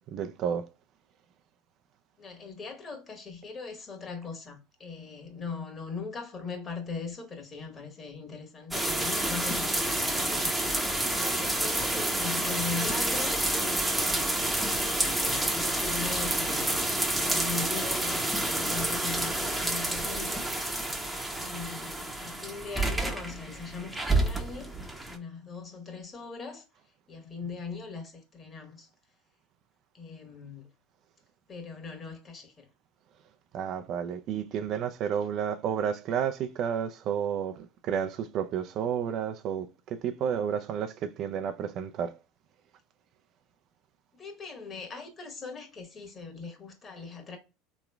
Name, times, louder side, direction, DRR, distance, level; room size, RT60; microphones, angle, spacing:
voice 1, 0.1-0.7 33.5-42.1, right 8 dB, 50° right, 0.4 m, -31 dB
voice 2, 2.2-10.5 11.1-13.4 14.0-14.5 14.9-20.5 21.4-24.7 25.1-26.6 27.1-28.9 29.9-30.7 31.5-32.6 44.2-47.4, left 5 dB, 35° left, 1.3 m, -40 dB
sound 1, 8.7-25.2, right 1 dB, 5° right, 0.7 m, -29 dB
3.6 x 3.0 x 2.2 m
hypercardioid pair, 85°, 0 cm